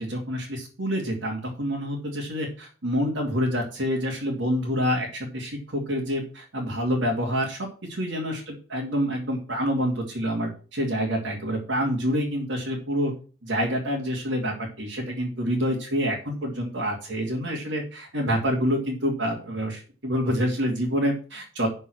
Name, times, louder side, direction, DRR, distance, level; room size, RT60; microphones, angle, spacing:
voice 1, 0.0-13.1 13.4-21.7, equal, 70° right, -3 dB, 2.5 m, -27 dB
11.0 x 4.6 x 6.2 m, 0.38 s
head